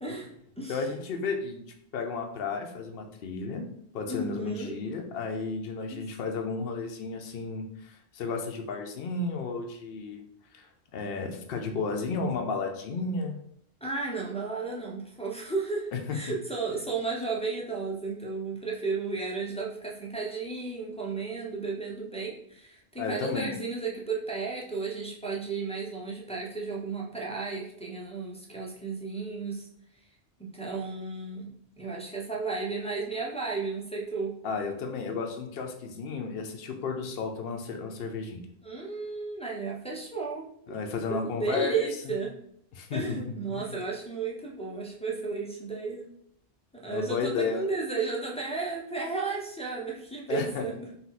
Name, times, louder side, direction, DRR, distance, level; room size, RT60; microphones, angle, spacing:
voice 1, 0.7-1.6 1.9-3.7 3.9-10.2 10.5-13.4 15.9-16.2 23.0-23.6 34.4-38.4 40.7-42.1 42.7-43.7 46.9-47.6 50.3-50.7, left 4 dB, 60° left, 3 dB, 0.8 m, -33 dB
voice 2, 4.1-4.8 5.9-6.0 13.8-29.7 30.4-34.4 38.6-40.4 41.4-42.3 42.9-46.0 46.8-50.9, right 4 dB, 10° left, -4 dB, 0.4 m, -33 dB
4.1 x 2.3 x 4.1 m, 0.70 s
omnidirectional pair, 1.1 m